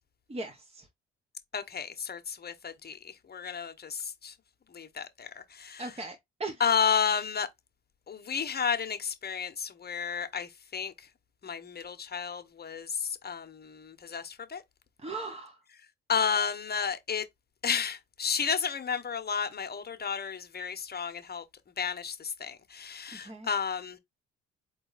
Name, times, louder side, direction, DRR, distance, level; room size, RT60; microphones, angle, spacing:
voice 1, 0.3-0.9 5.8-6.6 15.0-15.6 23.1-23.5, right 2 dB, 20° right, 1.1 m, -38 dB
voice 2, 1.5-4.3 4.7-5.8 6.6-7.5 8.1-10.9 11.4-14.6 16.1-17.2 17.6-21.4 21.8-24.0, left 6 dB, 35° left, 1.1 m, -32 dB
3.9 x 3.0 x 4.1 m
hypercardioid pair, 60°, 30 cm